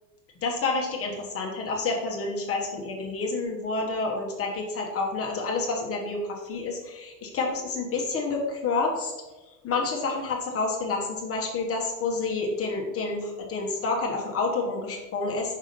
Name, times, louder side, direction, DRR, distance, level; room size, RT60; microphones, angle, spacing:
voice 1, 0.4-9.1 9.6-15.6, left 3 dB, 35° left, 0 dB, 1.2 m, -29 dB
5.5 x 3.6 x 5.1 m, 1.1 s
supercardioid pair, 120°, 38 cm